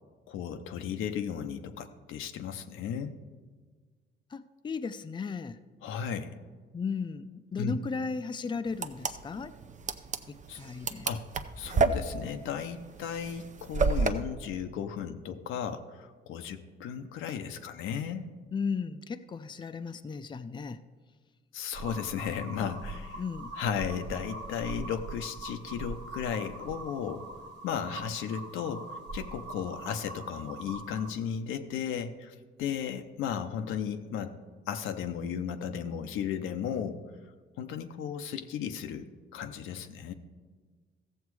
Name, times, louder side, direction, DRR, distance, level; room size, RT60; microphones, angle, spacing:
voice 1, 0.3-3.2 5.8-6.3 7.6-7.8 10.5-10.6 11.1-11.3 11.6-18.3 21.5-23.2 23.6-27.3 27.6-28.9 29.1-34.3 34.7-37.0 37.6-39.1 39.3-40.1, left 8 dB, 90° left, 7 dB, 0.7 m, -35 dB
voice 2, 4.3-5.6 6.7-9.5 10.3-11.1 18.5-20.8 23.2-23.5, left 5 dB, 25° left, 10 dB, 0.5 m, -35 dB
sound 1, 8.7-14.1, right 4 dB, 40° right, 0.6 m, -30 dB
sound 2, 21.7-31.1, right 2 dB, 70° right, 1.5 m, -42 dB
15.0 x 7.2 x 4.7 m, 1.5 s
cardioid pair, 90°, 20 cm